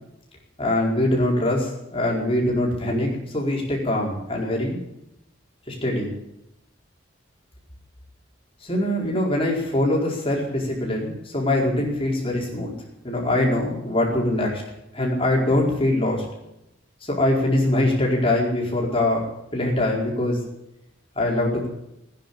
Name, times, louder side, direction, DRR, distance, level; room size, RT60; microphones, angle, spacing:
voice 1, 0.6-4.8 5.7-6.1 8.6-14.6 14.9-16.2 17.0-19.3 19.5-20.4 21.1-21.7, left 1 dB, 30° left, -2 dB, 4.7 m, -23 dB
16.0 x 10.0 x 8.5 m, 0.85 s
head